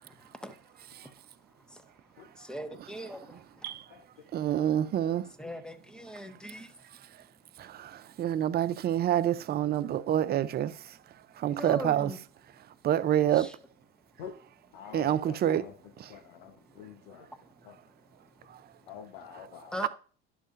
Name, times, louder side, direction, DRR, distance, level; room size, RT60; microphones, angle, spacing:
voice 1, 2.4-3.2 3.6-3.7 5.4-6.7 11.6-12.2 13.3-13.5 19.7-19.9, equal, 5° left, 0.9 m, -39 dB
voice 2, 4.3-5.2 7.7-10.7 11.4-12.1 12.8-13.5 14.9-15.6 16.0-16.1 19.8-19.9, right 11 dB, 35° right, 0.5 m, -27 dB
voice 3, 14.7-15.7 16.1-16.5 16.8-17.2 18.9-19.8, left 8 dB, 85° left, 0.9 m, -46 dB
11.0 x 6.4 x 2.5 m
supercardioid pair, 95°, 29 cm